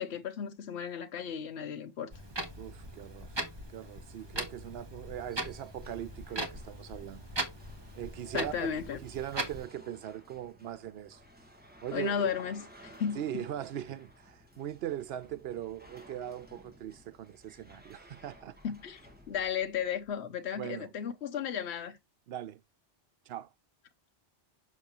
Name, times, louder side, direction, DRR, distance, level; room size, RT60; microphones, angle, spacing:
voice 1, 0.0-2.1 8.3-9.0 11.9-13.2 18.6-19.0 19.3-22.0, left 8 dB, 75° left, 1.1 m, -34 dB
Clock, 2.1-9.7, right 1 dB, 25° right, 1.2 m, -40 dB
voice 2, 2.6-3.4 3.7-7.2 7.9-8.7 9.0-11.2 11.8-12.3 13.1-18.6 20.5-20.9 22.3-22.6 23.3-23.5, right 11 dB, 65° right, 0.8 m, -40 dB
sound 1, 5.2-20.1, equal, 10° right, 1.5 m, -56 dB
7.3 x 5.8 x 2.9 m
omnidirectional pair, 1.1 m